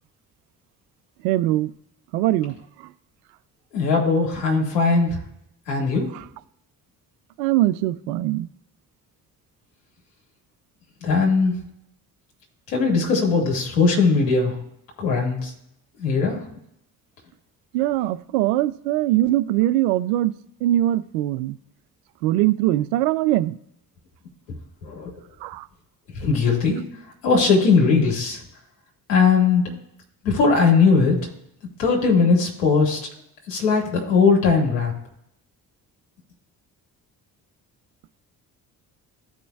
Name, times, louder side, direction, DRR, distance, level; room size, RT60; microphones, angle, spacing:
voice 1, 1.2-1.7 2.1-2.6 6.1-6.2 7.4-8.5 17.7-20.3 20.6-21.6 22.2-23.6 25.4-25.6, right 15 dB, 75° right, 0.5 m, -21 dB
voice 2, 3.7-5.2 5.7-6.1 11.0-11.5 12.7-14.5 15.0-15.5 16.0-16.4 24.8-25.1 26.2-26.8 27.2-28.4 29.1-29.6 30.2-31.2 31.8-33.0 33.5-34.9, left 4 dB, 80° left, 2.1 m, -19 dB
15.0 x 5.0 x 2.3 m
hypercardioid pair, 45°, 49 cm